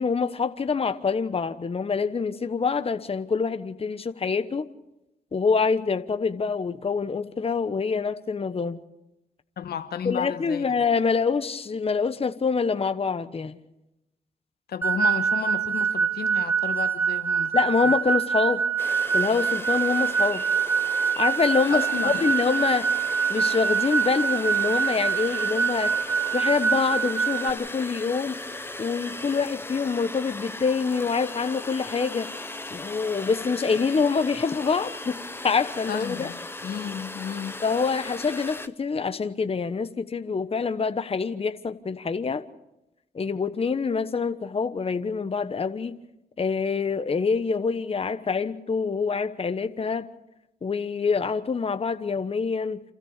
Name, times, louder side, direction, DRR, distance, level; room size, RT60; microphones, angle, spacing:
voice 1, 0.0-4.7 5.3-8.8 10.0-13.6 17.5-18.6 19.1-20.4 21.2-22.9 23.3-26.0 26.3-28.4 28.8-32.3 32.7-36.3 37.6-42.4 43.1-46.0 46.4-50.1 50.6-52.8, left 5 dB, 35° left, 1.2 m, -26 dB
voice 2, 9.6-10.6 14.7-17.6 17.8-17.9 21.7-22.2 33.2-33.4 35.9-37.5, left 8 dB, 70° left, 1.3 m, -33 dB
sound 1, 14.8-27.5, right 6 dB, 10° right, 1.2 m, -25 dB
sound 2, 18.8-38.7, left 2 dB, 15° left, 1.2 m, -37 dB
28.5 x 13.5 x 6.7 m
supercardioid pair, 65°, 17 cm